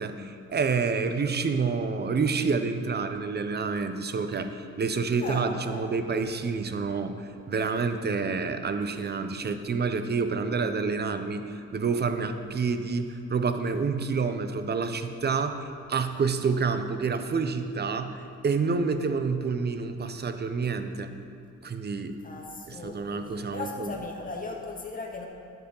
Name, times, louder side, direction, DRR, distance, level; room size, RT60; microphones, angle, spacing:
voice 1, 0.0-21.1 21.6-22.2 22.7-23.9, right 4 dB, 35° right, 9 dB, 0.8 m, -28 dB
voice 2, 5.2-5.9 22.2-25.3, left 3 dB, 25° left, 0 dB, 1.8 m, -37 dB
13.0 x 8.4 x 4.0 m, 2.5 s
cardioid pair, 90°, 30 cm